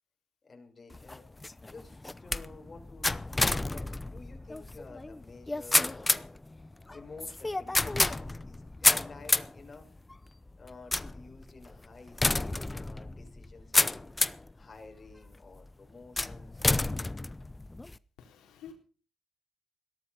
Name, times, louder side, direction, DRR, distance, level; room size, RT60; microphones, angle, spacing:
voice 1, 0.4-1.4 1.7-6.3 6.9-9.9 10.6-14.0 14.5-16.6 18.7-18.8, left 3 dB, 30° left, 3 dB, 6.0 m, -51 dB
sound 1, 0.9-14.5 15.1-15.5 16.2-18.0, left 2 dB, 15° left, 0.8 m, -30 dB
voice 2, 18.2-18.7, left 8 dB, 85° left, 2 dB, 4.1 m, -49 dB
17.5 x 13.0 x 5.7 m, 0.39 s
cardioid pair, 90°, 0 cm